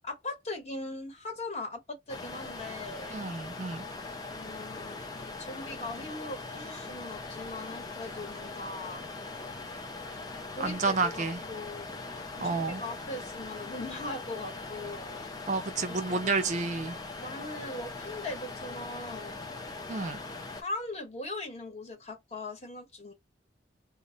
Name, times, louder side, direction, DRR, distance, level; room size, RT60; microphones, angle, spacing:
voice 1, 0.0-3.2 4.3-9.1 10.5-12.0 12.3-15.2 15.9-16.4 17.1-19.6 20.5-23.1, left 2 dB, 35° left, 1.0 m, -40 dB
sound 1, 2.1-20.6, left 3 dB, 20° left, 0.4 m, -41 dB
voice 2, 3.1-3.8 10.6-11.4 12.4-12.8 15.5-17.0 19.9-20.2, right 3 dB, 40° right, 0.4 m, -30 dB
2.1 x 2.0 x 3.7 m
head